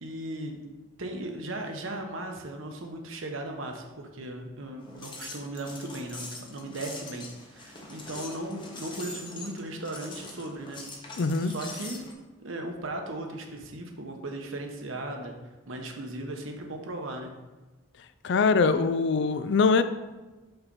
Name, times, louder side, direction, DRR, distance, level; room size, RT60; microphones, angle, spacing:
voice 1, 0.0-0.6 1.0-10.8 11.1-12.0 12.4-15.3 15.7-17.3, right 1 dB, 90° right, 3 dB, 1.0 m, -37 dB
sound 1, 4.8-12.1, left 2 dB, 25° left, 1.0 m, -43 dB
voice 2, 11.2-11.5 18.2-19.8, left 4 dB, 60° left, 11 dB, 0.4 m, -23 dB
5.6 x 4.1 x 5.3 m, 1.1 s
head